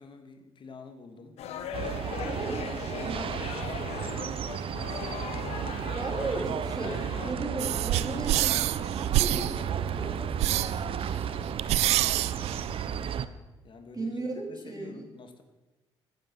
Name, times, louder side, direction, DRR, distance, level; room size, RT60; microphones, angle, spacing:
voice 1, 0.0-1.4 2.5-4.4 5.8-6.1 7.4-12.5 13.6-15.4, left 4 dB, 50° left, 7 dB, 2.4 m, -49 dB
sound 1, 1.4-7.3, left 8 dB, 80° left, 1.3 m, -39 dB
sound 2, 1.7-13.3, right 8 dB, 60° right, 0.9 m, -33 dB
voice 2, 2.2-2.7 3.0-3.4 6.0-8.6 9.2-9.5 9.7-10.1 13.9-15.0, right 3 dB, 35° right, 2 dB, 3.9 m, -35 dB
sound 3, 7.6-13.2, right 14 dB, 85° right, 0.5 m, -28 dB
14.0 x 9.9 x 7.9 m, 1.1 s
cardioid pair, 80°, 11 cm